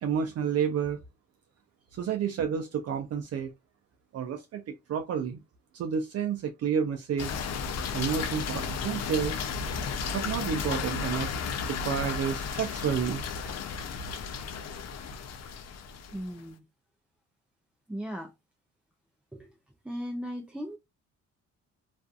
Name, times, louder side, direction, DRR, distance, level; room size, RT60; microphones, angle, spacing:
voice 1, 0.0-1.0 1.9-3.5 4.1-5.4 5.7-7.3 7.9-9.4 10.1-11.3 11.7-13.2, right 7 dB, 55° right, 0.5 m, -30 dB
sound 1, 7.2-16.4, left 5 dB, 60° left, 0.5 m, -34 dB
voice 2, 16.1-16.6 17.9-18.3 19.3-19.5 19.8-20.8, equal, 5° right, 0.4 m, -37 dB
2.5 x 2.4 x 2.3 m
cardioid pair, 90°, 30 cm